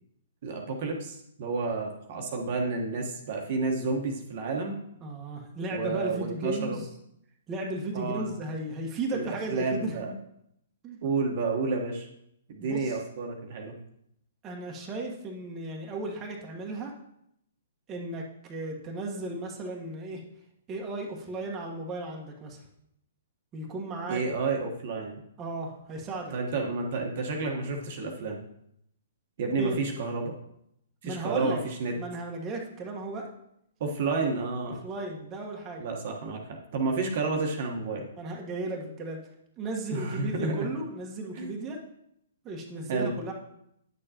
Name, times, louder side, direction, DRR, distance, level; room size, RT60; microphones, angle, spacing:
voice 1, 0.4-4.8 5.7-6.8 7.9-8.3 9.1-10.2 11.0-12.1 12.5-13.7 24.1-25.2 26.3-28.4 29.4-30.4 31.0-31.9 33.8-34.8 35.8-38.1 39.9-40.7 41.3-41.5 42.9-43.1, right 3 dB, 50° right, 1 dB, 1.2 m, -30 dB
voice 2, 5.0-6.9 7.5-10.0 10.8-11.0 12.6-13.0 14.4-16.9 17.9-20.2 20.7-22.6 23.5-24.2 25.4-26.3 29.6-29.8 31.0-31.6 32.0-33.3 34.8-35.9 38.2-39.2 39.6-41.8 42.4-43.3, right 2 dB, 25° right, -1 dB, 1.3 m, -35 dB
9.6 x 6.7 x 2.9 m, 0.76 s
figure-of-eight pair, 125°, 0 cm